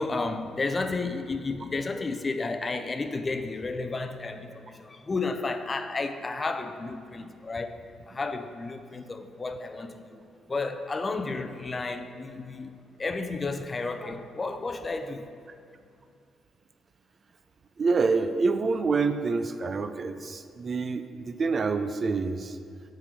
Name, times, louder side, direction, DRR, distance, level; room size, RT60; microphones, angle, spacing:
voice 1, 0.0-7.8 8.1-12.7 13.0-15.3, left 3 dB, 30° left, 0.4 m, -32 dB
voice 2, 17.8-22.6, right 4 dB, 40° right, 0.3 m, -27 dB
7.1 x 3.8 x 5.2 m
cardioid pair, 90°, 0 cm